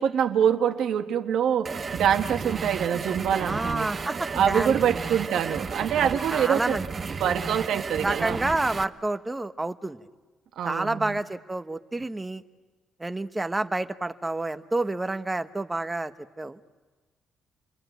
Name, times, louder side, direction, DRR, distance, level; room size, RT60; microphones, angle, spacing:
voice 1, 0.0-3.9 4.3-6.8 7.2-8.4 10.6-11.1, right 9 dB, 75° right, 6 dB, 1.5 m, -25 dB
sound 1, 1.6-8.8, right 5 dB, 40° right, 0.9 m, -33 dB
voice 2, 3.5-4.7 6.0-6.8 8.0-10.1 10.6-12.4 13.0-16.1 16.4-16.6, right 2 dB, 15° right, 10 dB, 1.1 m, -29 dB
28.5 x 22.5 x 9.3 m, 1.3 s
cardioid pair, 90°, 0 cm